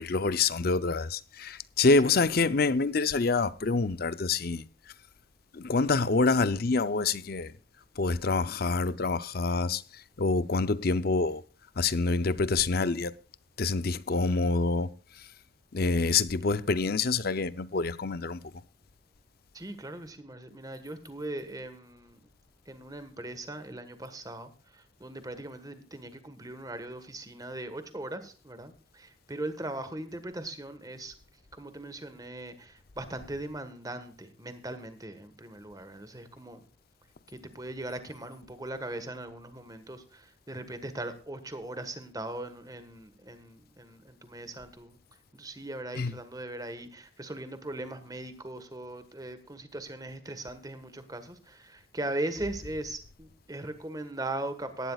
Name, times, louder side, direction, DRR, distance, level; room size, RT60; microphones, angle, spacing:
voice 1, 0.0-4.6 5.6-7.5 8.0-9.8 10.2-11.4 11.8-13.1 13.6-14.9 15.7-18.4 46.0-46.1, left 3 dB, 50° left, 0.6 m, -26 dB
voice 2, 19.5-22.2 22.7-24.5 25.0-31.1 31.6-36.6 37.5-40.0 40.5-44.9 45.4-54.9, right 1 dB, 20° right, 1.4 m, -39 dB
17.5 x 12.0 x 2.4 m
head